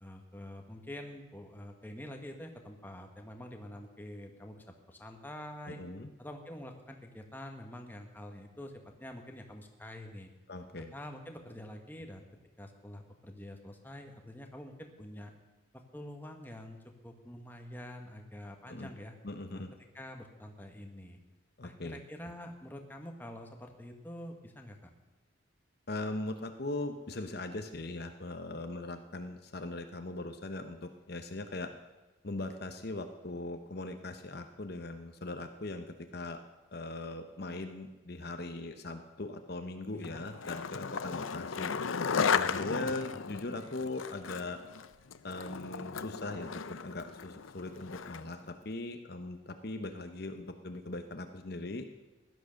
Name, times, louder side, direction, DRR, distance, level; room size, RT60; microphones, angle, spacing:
voice 1, 0.0-5.8 6.2-8.7 9.0-10.3 10.8-12.3 12.6-15.3 15.7-19.1 19.5-21.2 21.6-24.9 39.9-40.2 42.8-43.0, left 1 dB, 10° left, 3 dB, 1.4 m, -46 dB
voice 2, 5.7-6.1 10.5-10.9 18.7-18.9 19.2-19.7 21.6-22.0 25.9-31.7 32.2-36.4 36.7-41.7 42.3-44.6 45.2-51.8, left 2 dB, 50° left, 7 dB, 0.9 m, -40 dB
Skateboard, 40.0-48.4, left 6 dB, 85° left, 0.6 m, -35 dB
16.5 x 11.5 x 6.5 m, 1.1 s
head